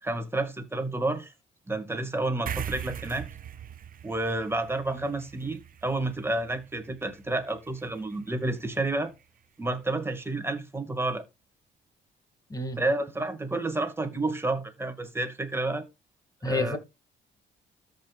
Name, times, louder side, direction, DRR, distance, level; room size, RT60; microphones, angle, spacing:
voice 1, 0.0-1.3 1.7-3.3 4.0-9.1 9.6-11.3 12.8-15.8 16.5-16.8, right 2 dB, 10° right, 1.9 m, -30 dB
sound 1, 2.5-9.2, right 9 dB, 45° right, 0.6 m, -42 dB
voice 2, 12.5-12.8 16.4-16.8, left 2 dB, 20° left, 2.1 m, -29 dB
13.5 x 5.4 x 2.4 m
cardioid pair, 90°, 20 cm